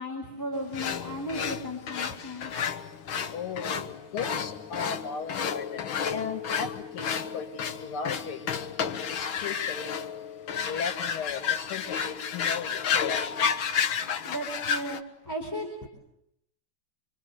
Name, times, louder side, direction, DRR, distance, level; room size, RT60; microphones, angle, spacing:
voice 1, 0.0-2.5 14.2-15.0 15.3-15.9, equal, 10° left, 1 dB, 4.2 m, -35 dB
sound 1, 0.7-15.0, left 7 dB, 70° left, 2.0 m, -31 dB
voice 2, 3.3-10.1 10.6-13.2, left 6 dB, 90° left, 7 dB, 2.9 m, -37 dB
27.0 x 25.5 x 8.0 m, 0.80 s
omnidirectional pair, 2.3 m